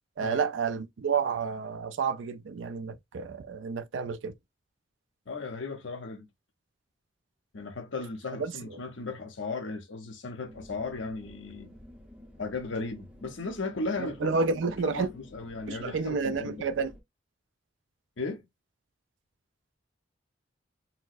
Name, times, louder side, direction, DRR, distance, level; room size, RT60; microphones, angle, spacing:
voice 1, 0.2-4.3 14.0-15.1 15.7-16.9, right 5 dB, 80° right, 0.4 m, -30 dB
voice 2, 5.3-6.3 7.5-11.8 12.4-14.3 14.8-16.7 18.2-18.4, left 3 dB, 80° left, 0.8 m, -36 dB
sound 1, 10.5-17.0, left 1 dB, 5° right, 0.6 m, -51 dB
4.2 x 2.0 x 2.4 m
head